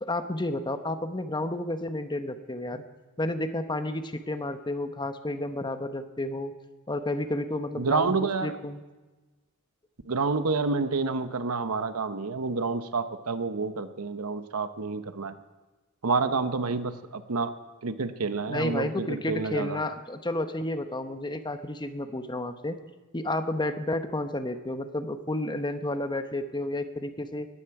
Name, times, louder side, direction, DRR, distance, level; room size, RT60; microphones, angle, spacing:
voice 1, 0.0-2.8 3.2-6.5 6.9-8.8 18.5-22.8 23.1-27.5, left 1 dB, 20° left, 9 dB, 0.9 m, -31 dB
voice 2, 7.8-8.5 10.1-15.3 16.0-17.5 17.8-19.8, right 4 dB, 75° right, 11 dB, 0.9 m, -28 dB
19.0 x 14.5 x 4.8 m, 1.2 s
head